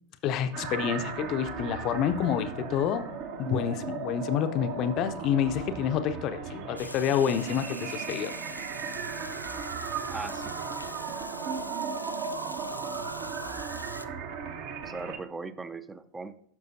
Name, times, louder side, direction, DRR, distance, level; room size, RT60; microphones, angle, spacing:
voice 1, 0.2-3.0 3.4-8.3, left 9 dB, 35° left, 11 dB, 0.5 m, -28 dB
sound 1, 0.5-15.2, right 6 dB, 45° right, 0.9 m, -36 dB
Water, 6.8-14.1, left 1 dB, 85° left, 0.3 m, -43 dB
voice 2, 10.1-10.5 14.8-16.5, right 3 dB, 10° right, 15 dB, 0.4 m, -39 dB
12.0 x 6.2 x 2.6 m, 0.64 s
figure-of-eight pair, 90°, 0 cm